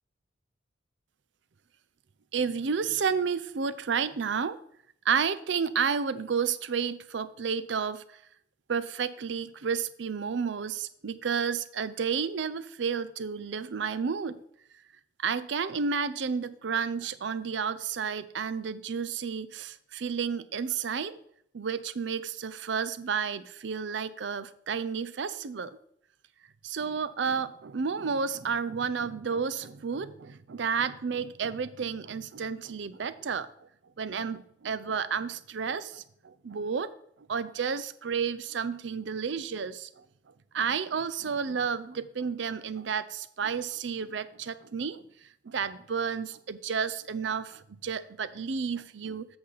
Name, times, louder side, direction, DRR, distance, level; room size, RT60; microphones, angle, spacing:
voice 1, 2.3-4.6 5.1-8.0 8.7-14.4 15.2-21.2 21.5-25.8 26.6-33.5 34.0-36.9 37.3-40.0 40.5-45.0 45.4-49.3, right 6 dB, 70° right, 14 dB, 0.5 m, -31 dB
8.0 x 6.7 x 4.0 m, 0.69 s
head